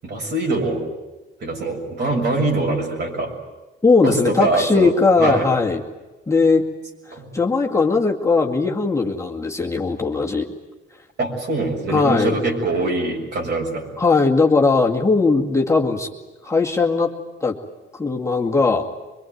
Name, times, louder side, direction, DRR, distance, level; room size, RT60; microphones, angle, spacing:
voice 1, 0.0-0.9 1.4-3.3 4.0-4.9 5.2-5.5 7.1-7.3 11.2-13.9, right 2 dB, 60° right, 1 dB, 6.9 m, -23 dB
voice 2, 3.8-5.8 6.3-6.6 7.1-10.5 11.9-12.4 14.0-16.1 16.4-17.1 17.4-17.6 17.9-18.9, left 4 dB, 15° left, 0 dB, 2.1 m, -18 dB
24.0 x 23.0 x 9.4 m, 1.2 s
cardioid pair, 90°, 20 cm